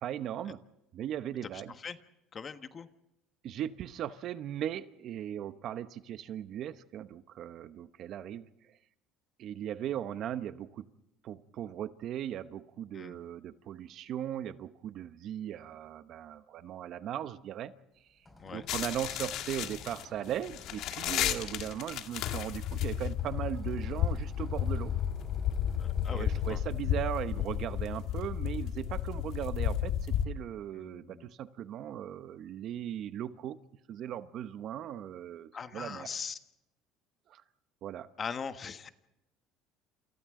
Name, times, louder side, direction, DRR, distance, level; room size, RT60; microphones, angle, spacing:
voice 1, 0.0-0.6 0.9-1.7 3.4-8.8 9.4-10.9 11.2-17.7 18.5-24.9 26.1-33.6 33.9-36.1 37.3-37.4 37.8-38.1, right 10 dB, 50° right, 12 dB, 1.0 m, -38 dB
voice 2, 1.5-2.0 2.3-2.9 12.9-13.2 18.4-18.6 25.8-26.6 30.7-31.3 35.5-36.4 38.2-38.9, left 6 dB, 30° left, 9 dB, 1.3 m, -41 dB
sound 1, 17.9-26.6, left 1 dB, 10° left, 5.6 m, -55 dB
sound 2, 18.7-30.3, left 9 dB, 60° left, 1.7 m, -33 dB
29.5 x 28.0 x 3.8 m, 0.87 s
cardioid pair, 125°, 0 cm